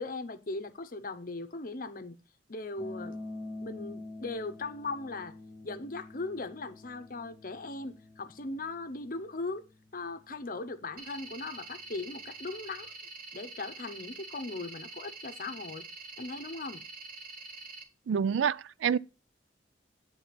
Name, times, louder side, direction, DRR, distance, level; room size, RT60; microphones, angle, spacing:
voice 1, 0.0-2.2 2.5-3.2 3.6-5.3 5.6-9.7 9.9-12.9 13.3-15.9 16.2-16.8, left 3 dB, 45° left, 0.8 m, -39 dB
sound 1, 2.8-12.9, left 2 dB, 20° right, 0.9 m, -48 dB
sound 2, 11.0-17.8, right 3 dB, 50° right, 1.5 m, -46 dB
voice 2, 18.1-19.0, right 7 dB, 80° right, 0.3 m, -27 dB
8.9 x 4.0 x 5.8 m
head